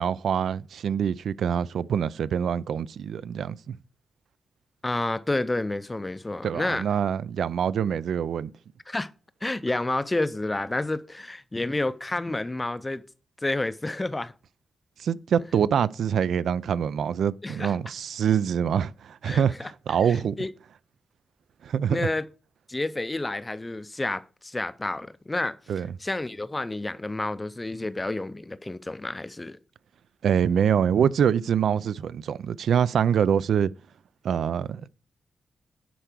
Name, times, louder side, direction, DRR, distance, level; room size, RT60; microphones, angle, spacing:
voice 1, 0.0-3.8 6.4-8.5 15.0-20.4 21.6-22.1 25.7-25.9 30.2-33.7 34.2-34.9, right 8 dB, 85° right, 0.4 m, -25 dB
voice 2, 4.8-6.8 8.9-9.1 9.4-13.0 13.4-14.3 17.4-17.7 19.2-19.7 20.0-20.5 21.9-22.2 22.7-25.6 26.0-29.6, left 2 dB, 15° left, 0.4 m, -30 dB
10.0 x 4.6 x 6.0 m
wide cardioid pair, 180°, 0 cm